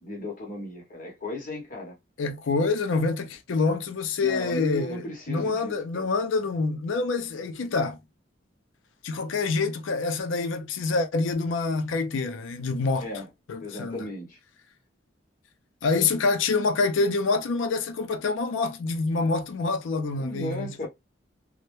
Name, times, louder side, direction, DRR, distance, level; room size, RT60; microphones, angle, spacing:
voice 1, 0.0-2.0 4.2-6.1 13.0-13.3 13.6-14.4 19.2-19.3 20.1-20.9, left 1 dB, 45° left, 0.9 m, -35 dB
voice 2, 2.2-8.0 9.0-13.1 13.5-14.1 15.8-20.7, left 4 dB, 80° left, 0.4 m, -26 dB
2.1 x 2.1 x 2.9 m
head